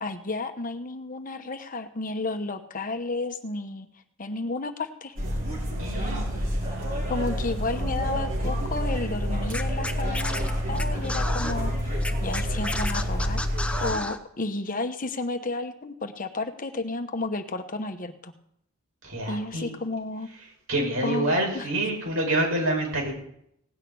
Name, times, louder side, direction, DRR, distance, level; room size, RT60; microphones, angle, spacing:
voice 1, 0.0-3.9 4.2-5.1 7.1-13.4 13.8-18.3 19.3-20.3 21.0-21.7, left 2 dB, 40° left, 8 dB, 1.0 m, -32 dB
sound 1, 5.2-13.9, equal, 40° right, 5.0 m, -28 dB
voice 2, 5.8-6.3 19.0-19.7 20.7-23.1, right 1 dB, 80° right, 0 dB, 6.0 m, -27 dB
Scratching (performance technique), 9.5-11.5 12.0-14.2, left 2 dB, 5° left, 0.9 m, -32 dB
17.5 x 6.6 x 9.4 m, 0.73 s
head